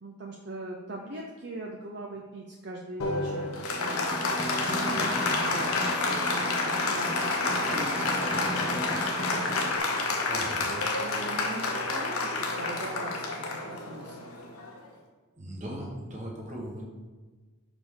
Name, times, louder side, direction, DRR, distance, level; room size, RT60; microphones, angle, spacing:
voice 1, 0.0-4.1 4.6-9.8 10.6-14.4, right 2 dB, 50° right, 0 dB, 0.6 m, -41 dB
Applause, 3.0-14.9, left 3 dB, 90° left, 1.0 m, -29 dB
Snare drum, 3.6-9.8, equal, 20° left, 0.5 m, -37 dB
voice 2, 10.3-10.7 15.4-16.8, right 1 dB, 35° right, -2 dB, 1.3 m, -38 dB
6.3 x 4.9 x 3.7 m, 1.3 s
head